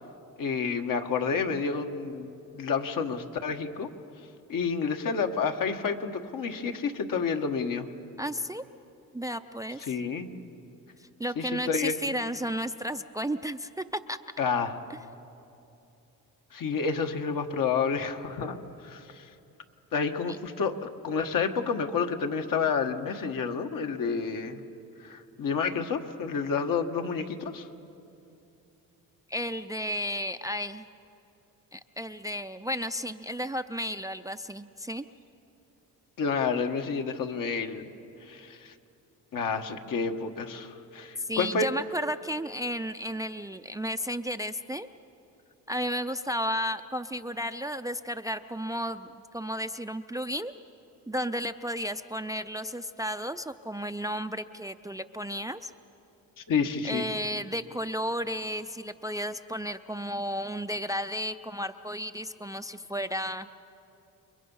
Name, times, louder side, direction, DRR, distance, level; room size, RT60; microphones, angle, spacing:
voice 1, 0.4-2.3 2.5-3.9 4.5-7.9 9.8-10.3 11.4-11.9 14.4-14.8 16.5-19.3 19.9-24.6 25.0-27.7 36.2-37.8 38.2-38.7 39.3-41.7 56.4-57.1, left 5 dB, 60° left, 5 dB, 1.5 m, -29 dB
voice 2, 8.2-8.6 9.1-9.9 11.0-14.2 29.3-30.9 31.7-35.1 41.2-44.9 45.7-50.5 51.1-55.7 56.8-63.5, equal, 10° right, 10 dB, 0.5 m, -33 dB
29.5 x 22.0 x 5.6 m, 2.8 s
cardioid pair, 85°, 36 cm